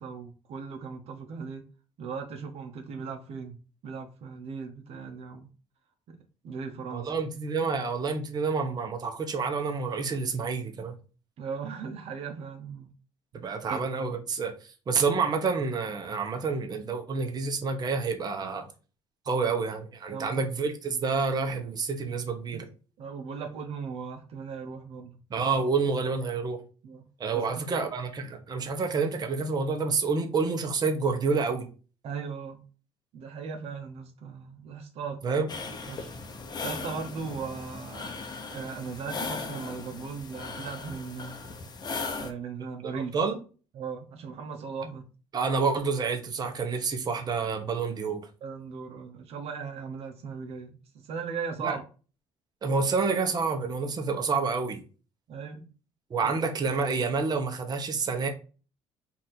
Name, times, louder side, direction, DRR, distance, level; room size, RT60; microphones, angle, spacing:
voice 1, 0.0-1.6 2.0-5.5 6.1-6.2 6.4-7.1 11.4-12.9 13.3-13.8 20.1-20.4 22.5-22.7 23.0-25.2 26.8-27.1 27.3-27.8 32.0-32.6 33.1-35.4 35.9-41.4 42.2-43.1 43.7-45.0 48.4-51.8 55.3-55.7 56.2-56.3, right 5 dB, 65° right, 0.8 m, -38 dB
voice 2, 6.9-11.0 13.4-18.7 19.3-22.6 25.3-26.6 27.2-31.7 35.2-35.5 42.8-43.4 45.3-48.3 51.6-51.8 52.6-54.8 56.1-58.3, right 4 dB, 35° right, 0.9 m, -28 dB
sound 1, 35.5-42.3, left 4 dB, 40° left, 0.8 m, -38 dB
4.1 x 2.6 x 4.2 m
cardioid pair, 105°, 11 cm